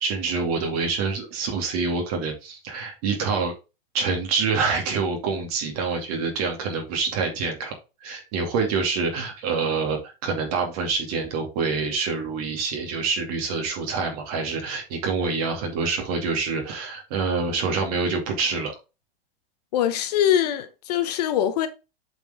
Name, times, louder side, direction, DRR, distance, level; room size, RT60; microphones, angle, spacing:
voice 1, 0.0-3.5 3.9-7.7 8.0-18.7, right 4 dB, 40° right, 2.4 m, -26 dB
voice 2, 19.7-21.7, left 10 dB, 40° left, 0.8 m, -23 dB
7.8 x 4.6 x 3.6 m
supercardioid pair, 165°, 30 cm